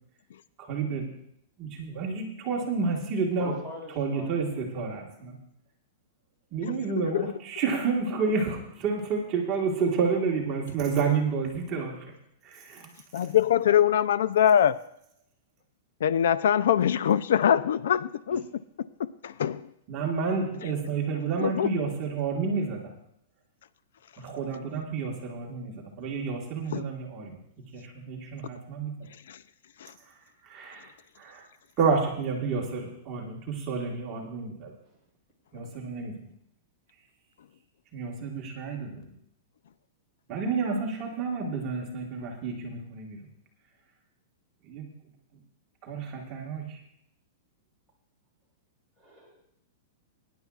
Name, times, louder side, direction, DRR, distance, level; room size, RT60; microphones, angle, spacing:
voice 1, 0.7-1.1 1.6-3.5 4.0-5.4 6.5-11.9 12.4-12.9 19.9-22.8 24.2-27.4 27.7-28.9 30.4-30.9 31.2-31.4 31.8-34.7 35.5-36.1 37.9-39.1 40.3-43.2 44.7-44.9 45.8-46.8, right 5 dB, 25° right, -1 dB, 1.5 m, -30 dB
voice 2, 3.4-4.8 5.2-5.3 18.3-18.4 49.0-49.4, right 1 dB, 5° left, -3 dB, 3.0 m, -42 dB
voice 3, 6.7-7.3 13.1-14.8 16.0-18.4 19.0-19.7 20.6-20.7 21.4-21.7 26.7-26.9 29.3-29.4 29.8-29.9, left 9 dB, 70° left, 16 dB, 0.4 m, -24 dB
21.5 x 10.5 x 2.4 m, 0.72 s
supercardioid pair, 175°, 0 cm